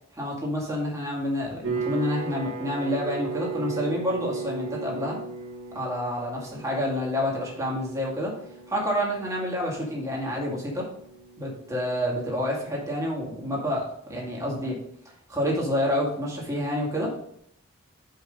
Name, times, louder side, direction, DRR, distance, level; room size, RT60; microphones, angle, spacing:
voice 1, 0.1-5.2 5.7-8.4 8.7-10.9 11.4-14.8 15.3-17.1, equal, 15° right, -3 dB, 2.1 m, -28 dB
sound 1, 1.6-12.7, right 4 dB, 75° right, 1.2 m, -37 dB
5.8 x 5.3 x 5.1 m, 0.70 s
head